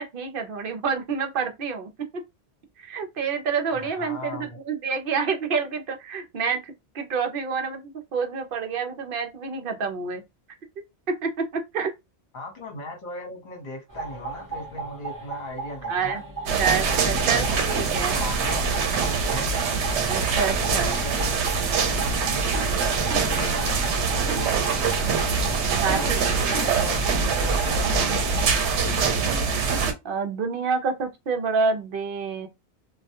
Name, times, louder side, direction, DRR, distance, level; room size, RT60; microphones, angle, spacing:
voice 1, 0.0-1.9 2.8-10.2 11.2-11.9 15.9-16.2 16.6-18.2 20.1-21.0 25.7-26.7 30.0-32.5, right 5 dB, 60° right, 0.7 m, -28 dB
voice 2, 3.7-4.6 12.3-16.2 17.0-17.8 18.2-19.5 20.4-21.5 22.3-25.3 25.9-28.5, left 1 dB, 50° left, 1.0 m, -38 dB
sound 1, 13.9-28.5, right 4 dB, 20° right, 0.8 m, -37 dB
sound 2, 16.5-29.9, right 5 dB, 85° right, 0.9 m, -24 dB
2.3 x 2.1 x 2.8 m
omnidirectional pair, 1.2 m